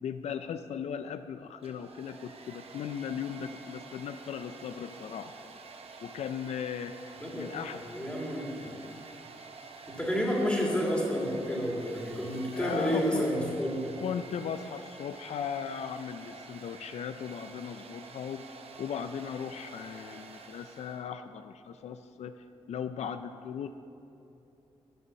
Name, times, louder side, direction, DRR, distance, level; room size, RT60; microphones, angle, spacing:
voice 1, 0.0-5.3 6.0-7.0 7.3-7.8 12.5-13.3 14.0-22.3 22.7-23.7, left 8 dB, 85° left, 10 dB, 0.4 m, -37 dB
Domestic sounds home sounds, 1.5-21.1, right 4 dB, 65° right, 0.9 m, -49 dB
voice 2, 7.2-7.5 7.8-8.8 9.9-14.0, equal, 10° left, -3 dB, 2.3 m, -30 dB
10.5 x 6.9 x 7.0 m, 2.9 s
wide cardioid pair, 120°, 11 cm